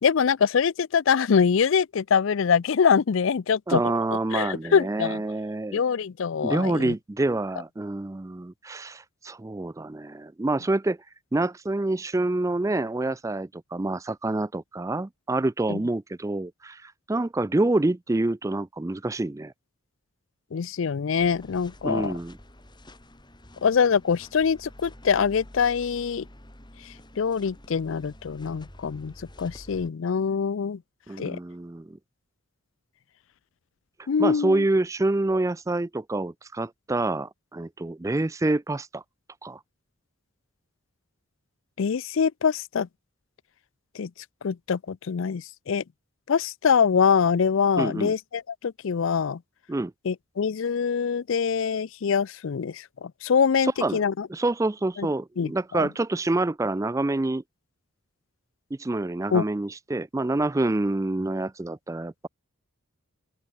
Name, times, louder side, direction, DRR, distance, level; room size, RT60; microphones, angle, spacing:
voice 1, 0.0-3.8 4.3-5.2 5.7-6.9 15.7-15.8 20.5-22.1 23.6-26.3 27.2-30.8 31.2-31.4 34.1-34.6 41.8-42.9 43.9-44.1 44.4-45.8 46.3-49.4 50.0-54.3 55.0-55.1 55.4-55.9 59.3-59.4, left 6 dB, 65° left, 0.4 m, -24 dB
voice 2, 3.7-5.8 6.4-11.0 11.3-19.5 21.8-22.4 31.1-32.0 34.2-39.0 39.4-39.6 47.8-48.1 49.7-49.9 53.6-54.0 54.3-57.4 58.8-62.3, right 2 dB, 15° right, 0.4 m, -27 dB
sound 1, 21.2-29.9, left 1 dB, 20° left, 3.6 m, -49 dB
open air
head